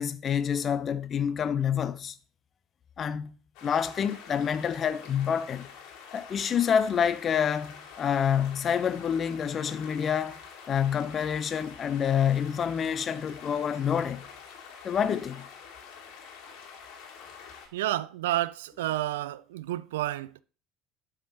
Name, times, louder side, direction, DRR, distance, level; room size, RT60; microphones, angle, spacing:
voice 1, 0.0-2.2 3.0-3.3 3.6-5.7 6.1-10.4 10.7-14.2 14.8-15.4 17.2-17.3, left 8 dB, 40° left, 0.8 m, -27 dB
sound 1, 3.5-17.7, left 6 dB, 60° left, 2.7 m, -47 dB
voice 2, 17.7-20.4, right 14 dB, 70° right, 0.3 m, -30 dB
12.0 x 5.0 x 2.9 m
figure-of-eight pair, 65°, 0 cm